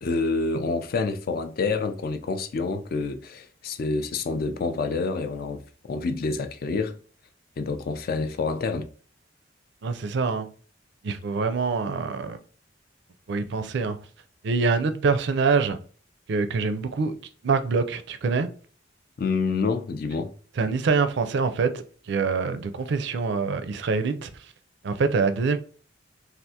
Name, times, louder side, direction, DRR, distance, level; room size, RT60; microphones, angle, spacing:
voice 1, 0.0-7.0 7.6-8.9 19.2-20.3, left 4 dB, 50° left, 0.4 m, -27 dB
voice 2, 9.8-10.5 11.0-12.4 13.3-14.0 14.4-15.8 16.3-17.1 17.4-18.5 20.6-21.8 22.1-24.3 24.8-25.6, right 4 dB, 65° right, 0.4 m, -25 dB
3.4 x 2.4 x 2.7 m
head